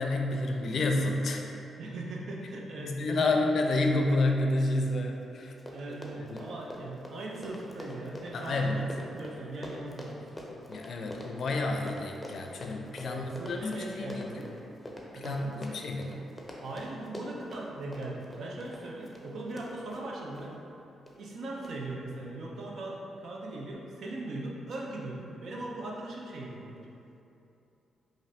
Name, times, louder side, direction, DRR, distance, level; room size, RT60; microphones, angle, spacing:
voice 1, 0.0-1.4 2.8-5.5 5.9-6.0 6.3-6.4 8.3-8.8 10.7-14.4 15.1-16.2, left 2 dB, 65° left, 2 dB, 0.4 m, -29 dB
voice 2, 1.8-3.3 5.7-10.2 13.0-14.6 15.1-15.5 16.6-20.5 21.1-26.9, right 2 dB, 70° right, -2 dB, 0.6 m, -39 dB
Run, 5.2-5.3 5.5-20.5 21.1-21.3 21.6-21.7, left 1 dB, 10° left, 0.7 m, -45 dB
5.0 x 2.6 x 2.7 m, 2.8 s
supercardioid pair, 55°, 0 cm